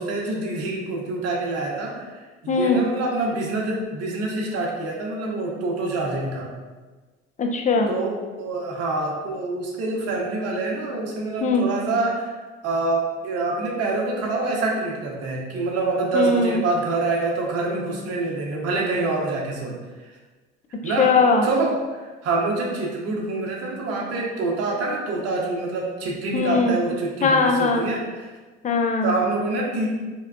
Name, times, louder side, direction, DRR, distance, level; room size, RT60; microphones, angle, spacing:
voice 1, 0.0-2.0 2.4-6.5 7.9-12.3 12.6-19.8 20.8-21.1 21.4-28.3 29.0-29.9, right 3 dB, 55° right, -1 dB, 0.9 m, -26 dB
voice 2, 2.5-2.8 7.4-7.9 11.4-11.6 16.1-16.6 21.0-21.5 26.3-26.8 27.2-27.9 28.6-29.1, left 4 dB, 25° left, 4 dB, 0.5 m, -20 dB
4.4 x 2.3 x 2.2 m, 1.3 s
hypercardioid pair, 60°, 30 cm